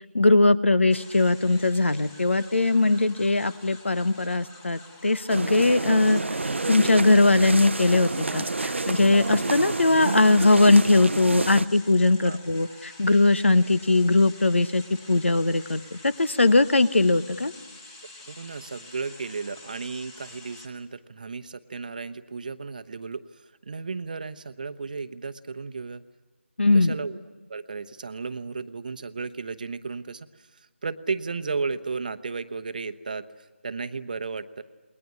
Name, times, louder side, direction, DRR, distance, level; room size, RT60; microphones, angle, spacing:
voice 1, 0.1-6.2 6.7-14.8 15.1-17.5 26.6-26.9, left 2 dB, 65° left, 14 dB, 1.2 m, -20 dB
sound 1, 0.9-20.7, left 2 dB, 10° left, 1.5 m, -47 dB
sound 2, 5.3-11.7, right 3 dB, 65° right, 0.8 m, -29 dB
voice 2, 18.3-23.2 23.6-26.0 26.7-27.2 27.5-33.3 33.6-34.6, right 4 dB, 40° right, 10 dB, 1.0 m, -34 dB
28.5 x 21.5 x 8.6 m, 1.2 s
figure-of-eight pair, 160°, 7 cm